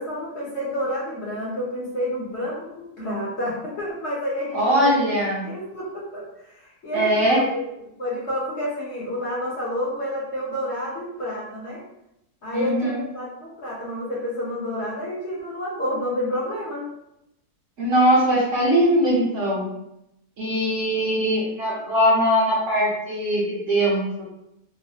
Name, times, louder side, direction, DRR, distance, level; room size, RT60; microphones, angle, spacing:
voice 1, 0.0-5.0 5.4-7.7 8.0-11.8 12.4-16.9, equal, 50° left, -6 dB, 0.9 m, -29 dB
voice 2, 4.5-5.4 6.9-7.4 12.5-13.0 17.8-19.6 20.4-24.0, equal, 55° right, -6 dB, 1.0 m, -21 dB
3.2 x 2.1 x 2.7 m, 0.83 s
omnidirectional pair, 1.7 m